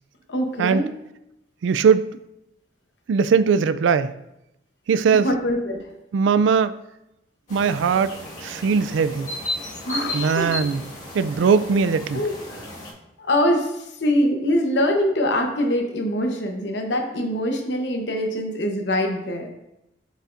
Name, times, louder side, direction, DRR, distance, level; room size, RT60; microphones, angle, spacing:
voice 1, 0.3-0.9 5.2-5.8 9.8-10.5 12.1-12.7 13.2-19.5, equal, 75° left, 3 dB, 1.0 m, -23 dB
voice 2, 1.6-2.0 3.1-4.1 4.9-5.3 6.1-6.7 7.5-8.1 8.4-9.3 10.1-10.8 11.1-12.2, right 6 dB, 85° right, 14 dB, 0.3 m, -19 dB
sound 1, 7.5-12.9, left 1 dB, 40° left, 1.7 m, -34 dB
7.5 x 5.4 x 2.5 m, 0.88 s
head